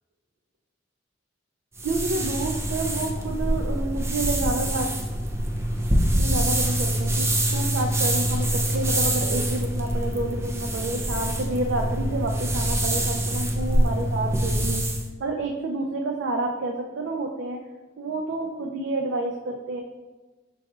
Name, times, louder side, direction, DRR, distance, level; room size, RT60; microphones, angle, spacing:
sound 1, 1.8-15.1, right 1 dB, 15° right, 0.4 m, -25 dB
voice 1, 1.8-5.0 6.2-14.8 15.2-17.6 18.0-19.8, right 2 dB, 75° right, 1 dB, 0.4 m, -29 dB
5.5 x 4.0 x 2.4 m, 1.2 s
head